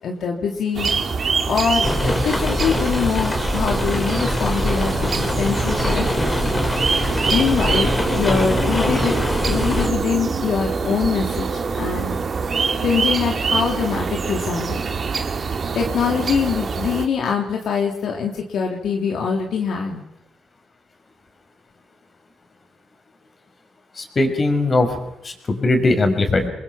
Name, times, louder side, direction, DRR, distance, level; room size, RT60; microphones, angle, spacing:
voice 1, 0.0-0.9 1.5-6.4 7.3-9.2 9.4-12.2 12.8-14.8 15.7-20.0, left 6 dB, 65° left, 1 dB, 3.3 m, -23 dB
sound 1, 0.7-17.1, right 5 dB, 40° right, 2.4 m, -25 dB
sound 2, 1.8-9.9, left 1 dB, 15° left, 4.5 m, -23 dB
voice 2, 24.0-25.0 25.2-26.5, left 2 dB, 35° left, 6 dB, 5.4 m, -19 dB
28.5 x 22.0 x 5.9 m, 0.83 s
cardioid pair, 90°, 0 cm